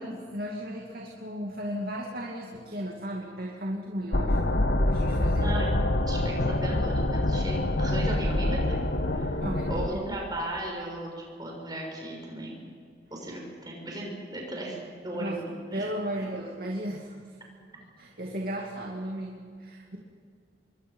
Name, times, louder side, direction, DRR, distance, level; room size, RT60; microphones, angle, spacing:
voice 1, 0.0-4.4 4.9-5.5 9.4-9.8 15.1-15.4 15.7-17.3 18.0-20.0, equal, 55° right, -1 dB, 2.5 m, -35 dB
sound 1, 4.1-9.9, left 1 dB, 70° left, 1.4 m, -26 dB
voice 2, 5.3-5.7 6.1-8.8 9.1-9.4 9.7-11.1 11.4-12.6 13.1-15.9, right 1 dB, 20° right, -1 dB, 6.5 m, -36 dB
27.0 x 23.0 x 5.6 m, 2.2 s
head